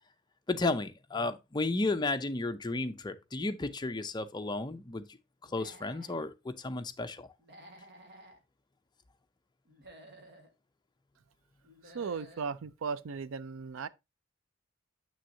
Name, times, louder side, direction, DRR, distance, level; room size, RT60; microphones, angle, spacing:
voice 1, 0.5-5.1 5.4-7.3, left 2 dB, 20° left, 0.6 m, -33 dB
Human voice / Animal, 5.4-6.3 7.4-8.4 9.7-10.5 11.6-12.5, right 1 dB, 60° right, 1.6 m, -54 dB
voice 2, 11.9-13.9, right 5 dB, 80° right, 0.4 m, -36 dB
7.0 x 6.2 x 2.7 m
head